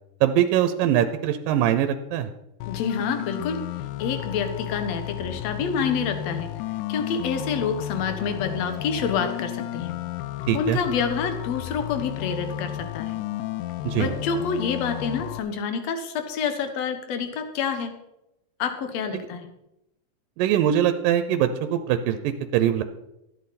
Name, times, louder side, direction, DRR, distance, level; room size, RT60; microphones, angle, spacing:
voice 1, 0.2-2.3 10.5-10.8 13.8-14.1 19.1-19.3 20.4-22.2 22.5-22.8, right 10 dB, 80° right, 9 dB, 2.2 m, -22 dB
sound 1, 2.6-15.4, left 13 dB, 85° left, 1.8 m, -33 dB
voice 2, 2.7-3.6 4.0-6.5 6.9-9.9 10.5-13.1 13.9-17.9 18.6-19.5, left 6 dB, 60° left, 8 dB, 1.9 m, -28 dB
13.5 x 11.0 x 4.2 m, 0.88 s
omnidirectional pair, 4.3 m